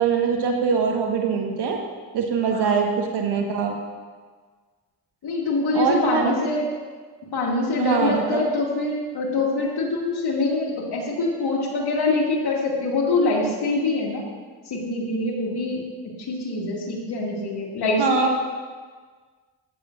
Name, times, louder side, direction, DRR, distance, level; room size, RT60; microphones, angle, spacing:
voice 1, 0.0-1.8 2.1-3.7 5.7-6.2 7.8-8.4 18.0-18.4, right 5 dB, 70° right, 2 dB, 1.7 m, -22 dB
voice 2, 2.5-2.8 5.2-6.6 7.3-14.2 14.7-15.8 16.2-18.3, left 2 dB, 65° left, -3 dB, 2.6 m, -24 dB
14.0 x 8.7 x 2.7 m, 1.5 s
supercardioid pair, 70°, 43 cm